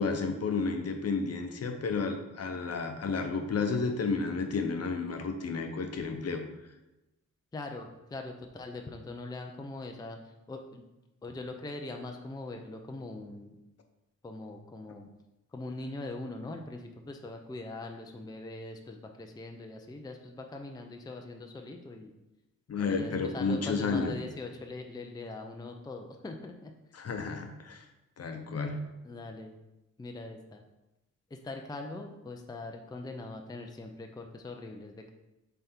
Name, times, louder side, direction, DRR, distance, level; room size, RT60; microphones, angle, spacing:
voice 1, 0.0-6.4 22.7-24.1 26.9-27.8 28.2-28.8, left 4 dB, 55° left, 5 dB, 0.8 m, -31 dB
voice 2, 7.5-10.2 10.5-10.8 11.2-13.6 14.2-15.1 15.5-22.1 22.9-26.7 29.0-29.5 30.0-30.6 31.3-35.1, left 2 dB, 15° left, 3 dB, 0.4 m, -42 dB
7.3 x 3.4 x 4.3 m, 0.96 s
wide cardioid pair, 150°, 30 cm